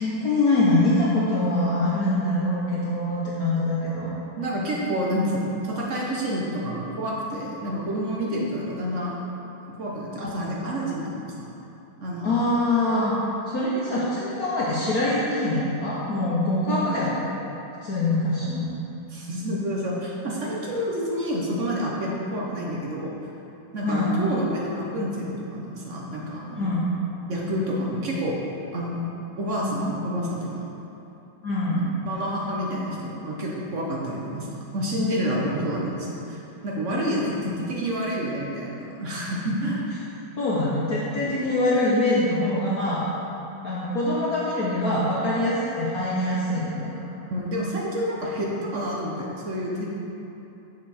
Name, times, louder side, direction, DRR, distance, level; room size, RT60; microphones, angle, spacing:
voice 1, 0.0-4.1 10.2-10.3 12.2-13.1 13.5-17.1 17.8-18.7 23.8-24.2 26.6-26.9 31.4-31.8 37.4-37.7 40.4-43.1 43.6-47.0, left 1 dB, 55° left, -7 dB, 1.2 m, -24 dB
voice 2, 4.4-9.2 9.7-11.5 12.0-12.4 16.7-16.8 19.1-23.2 23.7-26.6 27.3-28.4 28.7-29.0 29.4-30.7 31.8-39.8 47.3-50.0, equal, 50° right, -4 dB, 1.0 m, -28 dB
6.8 x 6.4 x 4.2 m, 2.9 s
omnidirectional pair, 2.2 m